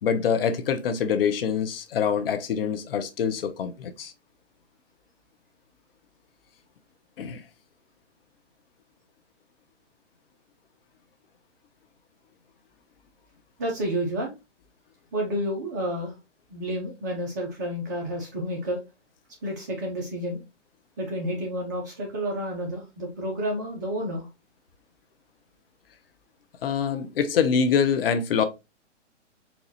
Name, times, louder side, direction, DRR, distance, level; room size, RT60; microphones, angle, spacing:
voice 1, 0.0-4.1 7.2-7.4 26.6-28.4, left 7 dB, 50° left, 0.6 m, -25 dB
voice 2, 13.6-14.3 15.1-16.1 16.5-18.8 19.4-20.4 21.0-24.3, equal, 15° right, 0.4 m, -30 dB
4.2 x 2.3 x 2.6 m
hypercardioid pair, 140°, 37 cm